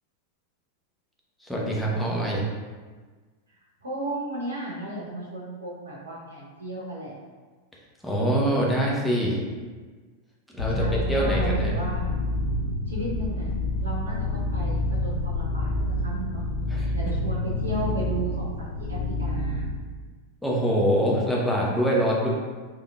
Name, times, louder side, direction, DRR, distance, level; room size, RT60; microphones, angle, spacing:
voice 1, 1.4-2.4 8.0-9.4 10.5-11.8 16.7-16.9 20.4-22.3, equal, 5° left, -4 dB, 0.8 m, -24 dB
voice 2, 3.8-7.1 10.7-12.1 12.9-13.5 13.8-16.4 16.9-19.7, right 1 dB, 75° right, -4 dB, 0.8 m, -34 dB
sound 1, 10.6-19.8, left 1 dB, 80° left, 0.6 m, -28 dB
3.5 x 3.4 x 2.3 m, 1.4 s
figure-of-eight pair, 90°, 0 cm